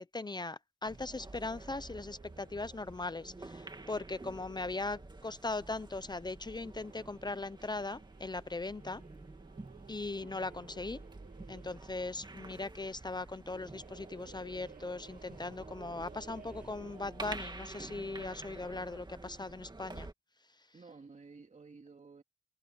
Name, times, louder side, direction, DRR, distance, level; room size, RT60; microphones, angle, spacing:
voice 1, 0.0-9.0 9.9-11.0 11.5-20.1, left 3 dB, 30° left, 0.6 m, -39 dB
sound 1, 0.8-20.1, right 2 dB, 30° right, 2.4 m, -49 dB
sound 2, 1.9-17.6, right 6 dB, 75° right, 1.0 m, -58 dB
voice 2, 20.7-22.2, right 4 dB, 55° right, 2.4 m, -54 dB
wide cardioid pair, 85°, 15 cm